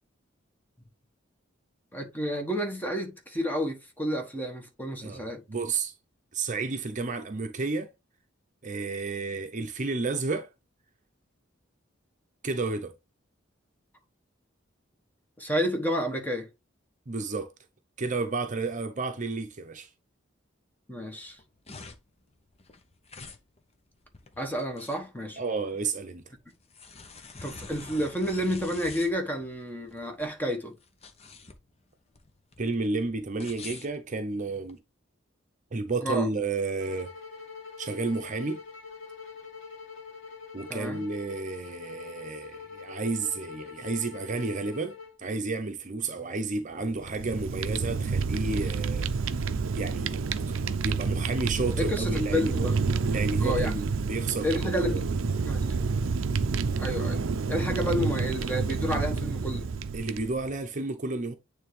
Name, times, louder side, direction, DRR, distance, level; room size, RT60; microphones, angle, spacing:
voice 1, 1.9-5.4 15.4-16.5 20.9-21.4 24.4-25.4 27.4-30.7 36.0-36.3 40.7-41.0 51.8-52.8 53.4-53.8 54.4-55.1 55.4-55.6 56.8-59.7, equal, 10° left, 1.2 m, -30 dB
voice 2, 5.0-5.9 6.3-7.9 8.6-10.5 12.4-12.9 17.1-17.5 18.0-19.9 25.4-26.3 32.6-34.8 35.7-37.1 37.8-38.6 40.5-49.1 49.8-50.6 50.8-55.0 59.9-61.3, right 3 dB, 40° right, 0.8 m, -31 dB
sound 1, 21.2-34.8, left 4 dB, 30° left, 0.8 m, -47 dB
sound 2, 36.8-45.2, left 5 dB, 80° left, 2.1 m, -44 dB
Fire, 46.9-60.5, right 4 dB, 80° right, 0.5 m, -29 dB
9.0 x 3.4 x 3.2 m
head